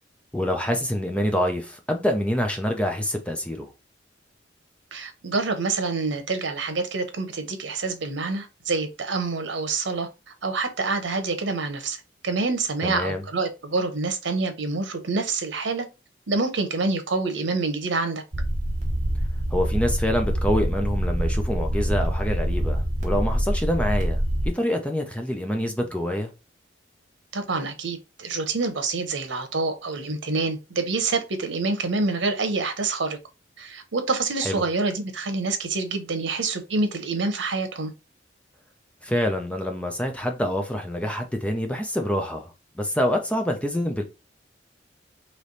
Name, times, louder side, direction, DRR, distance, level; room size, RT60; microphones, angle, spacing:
voice 1, 0.3-3.7 12.8-13.2 19.5-26.3 34.4-34.6 39.0-44.0, equal, 5° left, 0.6 m, -26 dB
voice 2, 4.9-10.1 10.4-12.0 12.2-15.9 16.3-18.2 27.3-33.2 33.6-37.9, right 3 dB, 85° right, 0.9 m, -27 dB
sound 1, 18.3-24.5, equal, 40° right, 1.1 m, -25 dB
3.4 x 3.1 x 4.0 m
head